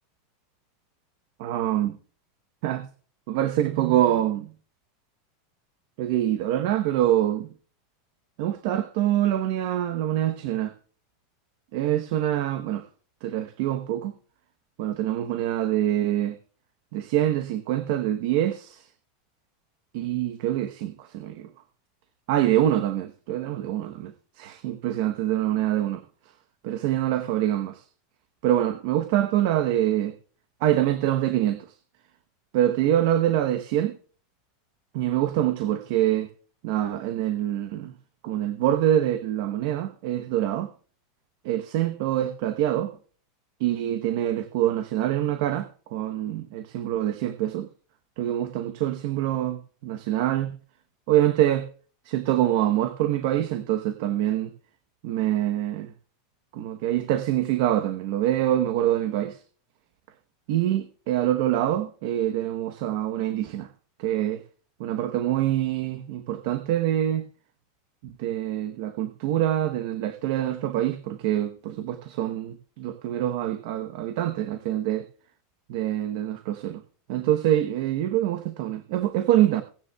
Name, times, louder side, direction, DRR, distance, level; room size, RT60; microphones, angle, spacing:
voice 1, 1.4-2.0 2.6-2.9 3.3-4.5 6.0-7.5 8.4-10.7 11.7-12.8 13.2-14.1 14.8-16.4 16.9-18.9 19.9-21.5 22.3-24.1 24.4-26.0 26.6-27.8 28.4-30.1 30.6-31.6 32.5-34.0 34.9-36.3 36.6-37.9 38.2-40.7 41.4-42.9 43.6-47.7 48.2-50.5 51.1-51.7 52.0-54.5 55.0-55.9 56.5-59.4 60.5-63.7 64.0-64.4 64.8-67.2 68.0-75.1 75.7-76.8 77.1-79.6, right 12 dB, 55° right, 0.9 m, -25 dB
18.0 x 9.6 x 2.3 m
supercardioid pair, 155°, 0 cm